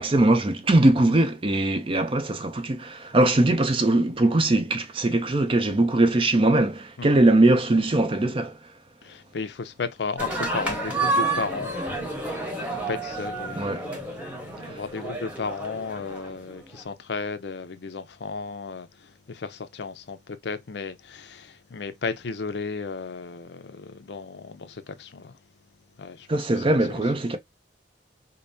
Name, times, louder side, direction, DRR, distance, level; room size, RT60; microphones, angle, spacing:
voice 1, 0.0-8.6 13.6-13.9 14.7-14.8 26.3-27.4, right 2 dB, 30° right, 0.5 m, -21 dB
voice 2, 9.0-12.0 12.3-25.4 26.0-26.6, left 4 dB, 65° left, 0.5 m, -34 dB
sound 1, 10.2-16.8, right 2 dB, 10° right, 1.1 m, -30 dB
5.2 x 2.0 x 2.7 m
head